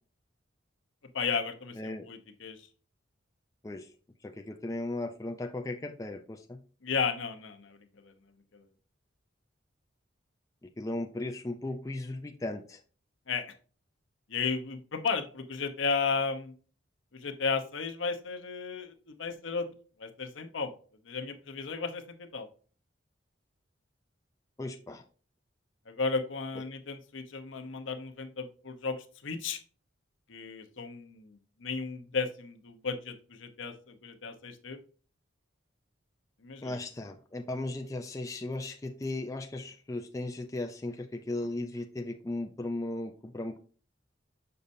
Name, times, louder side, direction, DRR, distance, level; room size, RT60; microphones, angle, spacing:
voice 1, 1.1-2.6 6.8-7.8 8.0-8.1 8.5-8.6 13.3-13.5 14.3-16.5 17.1-19.7 20.0-20.7 21.0-22.5 25.9-29.6 30.3-34.8 36.4-36.8, left 5 dB, 80° left, 0.8 m, -34 dB
voice 2, 1.8-2.1 3.6-3.9 4.2-6.6 10.6-12.8 24.6-25.0 36.6-43.6, left 2 dB, 15° left, 0.4 m, -36 dB
6.7 x 5.3 x 2.6 m
head